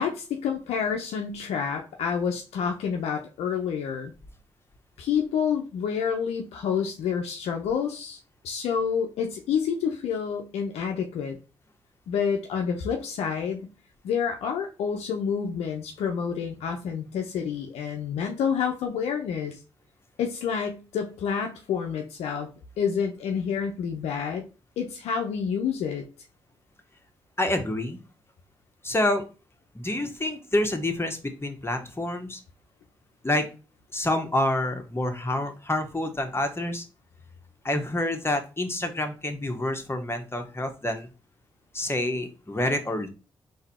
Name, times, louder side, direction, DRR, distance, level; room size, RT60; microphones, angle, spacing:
voice 1, 0.0-4.1 5.0-8.2 8.4-11.4 12.1-13.6 14.0-19.6 20.2-22.5 22.8-24.5 24.8-26.0, left 7 dB, 85° left, 3 dB, 0.6 m, -28 dB
voice 2, 27.4-28.0 28.8-29.2 29.7-32.4 33.2-33.5 33.9-36.8 37.6-41.1 41.7-43.1, left 1 dB, 25° left, 5 dB, 1.3 m, -27 dB
3.9 x 2.8 x 4.2 m, 0.32 s
supercardioid pair, 40°, 11 cm